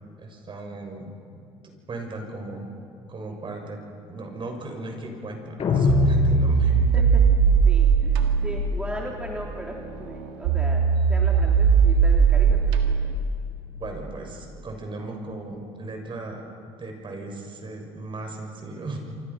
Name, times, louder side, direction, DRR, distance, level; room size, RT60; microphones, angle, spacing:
voice 1, 0.2-1.2 1.9-2.7 3.1-3.8 4.1-7.0 13.8-16.4 16.8-19.0, right 2 dB, 40° right, 3 dB, 6.6 m, -35 dB
sound 1, 5.6-7.1, left 6 dB, 50° left, 6.0 m, -23 dB
sound 2, 5.9-13.2, right 6 dB, 85° right, 2.0 m, -20 dB
voice 2, 6.9-13.0, right 1 dB, 10° right, -2 dB, 3.4 m, -37 dB
27.5 x 25.0 x 5.8 m, 2.4 s
supercardioid pair, 75°, 13 cm